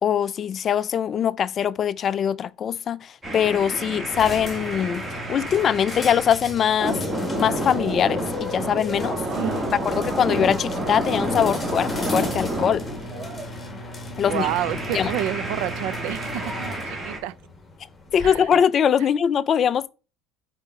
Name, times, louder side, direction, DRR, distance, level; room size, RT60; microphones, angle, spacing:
voice 1, 0.0-7.0 7.4-9.2 9.8-12.8 14.2-14.5 14.9-15.1 18.1-19.9, left 8 dB, 30° left, 0.3 m, -22 dB
sound 1, 3.2-6.4 6.8-13.5 14.2-17.2, right 1 dB, 15° right, 1.9 m, -29 dB
sound 2, 4.1-18.6, left 1 dB, 15° left, 1.8 m, -37 dB
voice 2, 9.3-9.8 14.3-17.3 18.2-18.5, right 13 dB, 70° right, 0.4 m, -29 dB
5.3 x 4.1 x 4.7 m
cardioid pair, 150°, 0 cm